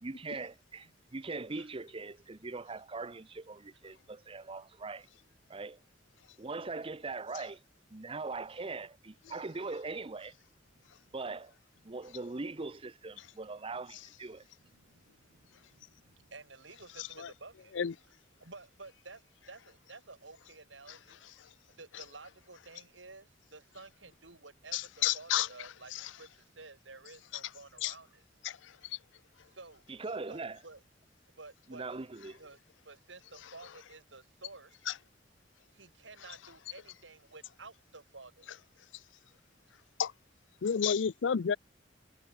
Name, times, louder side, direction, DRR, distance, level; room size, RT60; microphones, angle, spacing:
voice 1, 0.0-5.1 5.5-5.8 6.4-7.6 7.9-10.3 11.1-11.5 11.8-14.4 29.9-30.6 31.7-32.4, right 3 dB, 30° right, 0.8 m, -41 dB
voice 2, 6.2-6.5 9.3-9.4 10.7-11.2 11.8-12.0 13.2-13.5 14.3-17.8 18.4-21.2 21.7-28.2 29.5-29.8 30.3-30.8 31.4-31.9 32.4-32.6 32.8-34.8 35.7-38.5, right 3 dB, 85° right, 5.1 m, -53 dB
voice 3, 17.0-17.3 17.7-17.9 24.7-25.5 25.9-26.1 27.8-27.9 28.4-29.0 34.9-35.0 40.0-40.1 40.6-41.6, left 8 dB, 80° left, 0.5 m, -31 dB
head